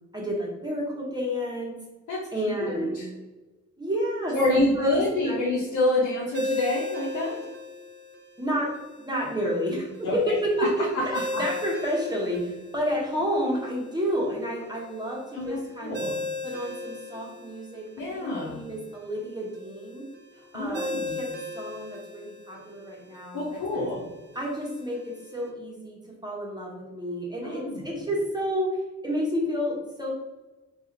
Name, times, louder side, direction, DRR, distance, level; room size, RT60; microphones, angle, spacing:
voice 1, 0.1-1.7 2.3-3.0 3.8-5.4 8.4-8.7 9.1-9.9 10.3-16.0 16.4-17.8 18.1-20.1 20.5-23.9 24.3-28.7 29.0-30.1, equal, 15° right, -4 dB, 1.0 m, -30 dB
voice 2, 2.6-3.1 4.3-7.4 10.0-10.3 10.6-10.7 10.9-11.4 15.3-16.1 18.0-18.6 20.5-21.2 23.3-24.0 27.4-27.8, left 2 dB, 85° left, -5 dB, 0.7 m, -27 dB
Ringtone, 6.3-25.5, left 2 dB, 35° right, 0.7 m, -38 dB
2.8 x 2.4 x 3.8 m, 1.1 s
cardioid pair, 70°, 29 cm